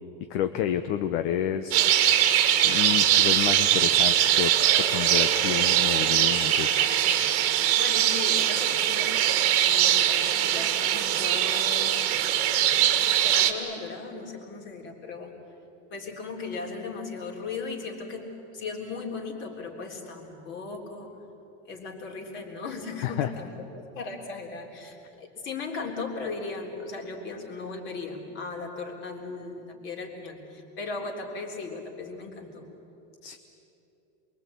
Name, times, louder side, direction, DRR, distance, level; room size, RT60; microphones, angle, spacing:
voice 1, 0.3-1.8 2.6-4.5 4.9-6.8 23.0-23.3 33.2-33.4, left 10 dB, 45° left, 8 dB, 1.0 m, -29 dB
sound 1, 1.7-13.5, right 11 dB, 40° right, 1.8 m, -22 dB
voice 2, 7.5-12.0 13.2-15.3 15.9-21.1 21.7-32.7, left 4 dB, 30° left, 2 dB, 3.6 m, -37 dB
27.5 x 22.5 x 8.5 m, 2.9 s
supercardioid pair, 170°, 37 cm